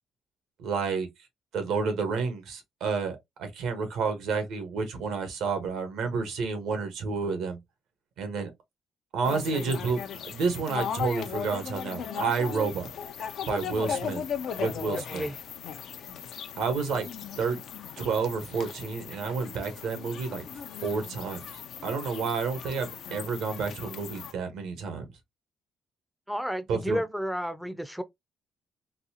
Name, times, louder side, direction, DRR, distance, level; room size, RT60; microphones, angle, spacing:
voice 1, 0.6-1.1 1.5-7.6 8.2-8.5 9.1-12.9 13.5-14.2 14.5-15.3 16.6-17.1 17.4-17.6 18.0-20.4 20.8-25.1 26.7-27.0, right 5 dB, 85° right, 1.3 m, -30 dB
sound 1, 9.2-24.3, left 8 dB, 70° left, 0.6 m, -37 dB
voice 2, 26.3-28.0, equal, ahead, 0.5 m, -32 dB
4.0 x 2.3 x 2.8 m
cardioid pair, 90°, 0 cm